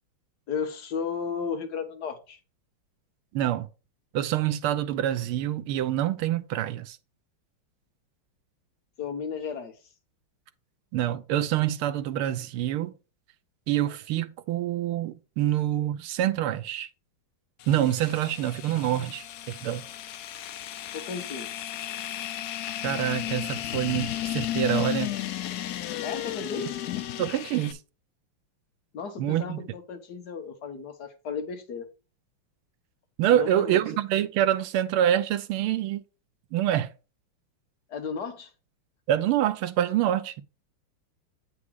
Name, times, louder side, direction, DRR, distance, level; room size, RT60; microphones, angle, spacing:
voice 1, 0.5-2.4 9.0-9.7 20.9-21.7 26.0-26.8 28.9-31.9 33.3-33.8 37.9-38.5, left 6 dB, 55° left, 1.7 m, -34 dB
voice 2, 3.3-3.7 4.1-7.0 10.9-12.9 13.7-16.9 17.7-19.8 22.8-25.1 27.2-27.8 29.2-29.6 33.2-36.0 36.5-36.9 39.1-40.4, right 12 dB, 90° right, 1.6 m, -26 dB
sound 1, 17.6-27.7, left 12 dB, 75° left, 0.9 m, -34 dB
8.4 x 4.9 x 4.7 m
omnidirectional pair, 2.4 m